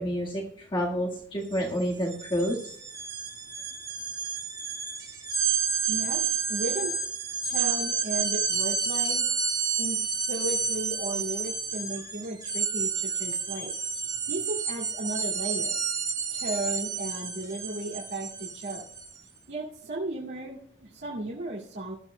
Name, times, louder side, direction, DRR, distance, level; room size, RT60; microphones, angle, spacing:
voice 1, 0.0-2.7, equal, 25° left, -3 dB, 1.6 m, -29 dB
sound 1, 1.4-1.6 1.9-19.2, right 6 dB, 20° right, 1.6 m, -30 dB
voice 2, 5.9-6.9 7.4-9.3 9.8-15.8 16.3-18.8 19.5-21.9, right 1 dB, 70° right, -6 dB, 2.4 m, -35 dB
18.0 x 12.5 x 2.2 m, 0.65 s
head